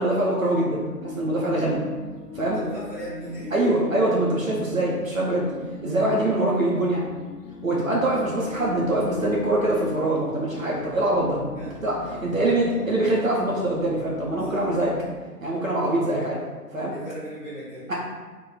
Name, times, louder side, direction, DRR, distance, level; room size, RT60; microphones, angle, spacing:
voice 1, 0.0-1.8 2.3-2.6 3.5-5.5 5.8-7.0 7.6-14.9 15.4-16.4 16.7-16.9 17.9-18.0, right 1 dB, 60° right, -4 dB, 0.7 m, -24 dB
sound 1, 0.5-15.3, left 5 dB, 80° left, 0.6 m, -40 dB
voice 2, 2.5-3.8 10.9-11.0 11.4-11.7 12.0-13.0 13.4-13.6 14.3-14.9 15.9-16.3 16.9-17.9, equal, 10° right, -14 dB, 1.1 m, -38 dB
3.0 x 2.2 x 3.8 m, 1.3 s
figure-of-eight pair, 160°, 47 cm